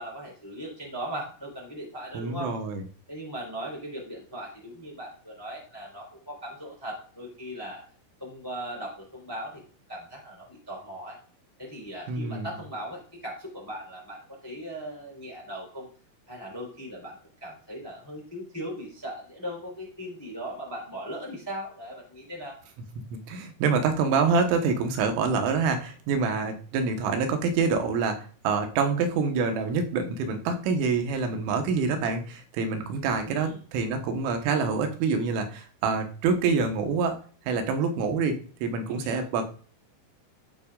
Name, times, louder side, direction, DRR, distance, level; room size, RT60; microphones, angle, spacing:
voice 1, 0.0-2.6 3.1-7.8 8.2-9.6 9.9-11.2 11.6-15.9 16.3-17.1 17.4-22.6 33.2-33.6 38.9-39.2, equal, 5° left, -1 dB, 3.1 m, -38 dB
voice 2, 2.1-2.8 12.1-12.5 23.1-37.2 37.5-39.5, right 5 dB, 85° right, 6 dB, 3.8 m, -26 dB
14.0 x 7.7 x 2.4 m, 0.42 s
omnidirectional pair, 5.6 m